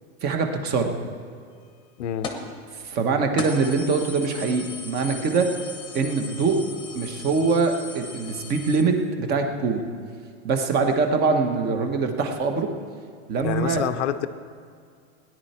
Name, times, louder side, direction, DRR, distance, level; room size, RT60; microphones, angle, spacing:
voice 1, 0.2-0.9 2.8-5.5 5.9-6.6 6.9-9.9 10.4-12.7 13.3-13.8, right 4 dB, 25° right, 5 dB, 1.1 m, -23 dB
voice 2, 2.0-2.3 13.4-14.3, left 10 dB, 90° left, 11 dB, 0.8 m, -27 dB
sound 1, 2.2-2.5 2.9-3.0 3.4-8.8, left 4 dB, 15° left, 1.0 m, -37 dB
17.5 x 10.5 x 4.3 m, 2.2 s
supercardioid pair, 155°, 35 cm